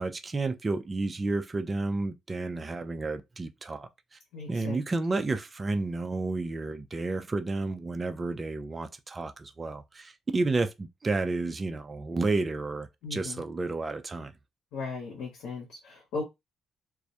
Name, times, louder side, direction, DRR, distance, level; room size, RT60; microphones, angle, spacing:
voice 1, 0.0-4.2 4.5-14.3, right 3 dB, 30° right, 0.3 m, -31 dB
voice 2, 4.3-4.8 13.0-13.4 14.7-16.2, left 4 dB, 90° left, 0.7 m, -37 dB
2.2 x 2.0 x 2.7 m
cardioid pair, 90°, 0 cm